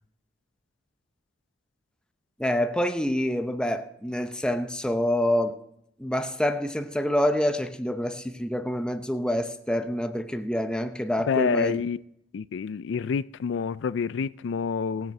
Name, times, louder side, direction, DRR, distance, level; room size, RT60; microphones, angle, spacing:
voice 1, 2.4-5.6 6.0-11.8, equal, 5° left, 0.7 m, -27 dB
voice 2, 11.3-12.0 12.3-15.1, left 6 dB, 75° left, 0.4 m, -28 dB
18.5 x 7.6 x 5.4 m
head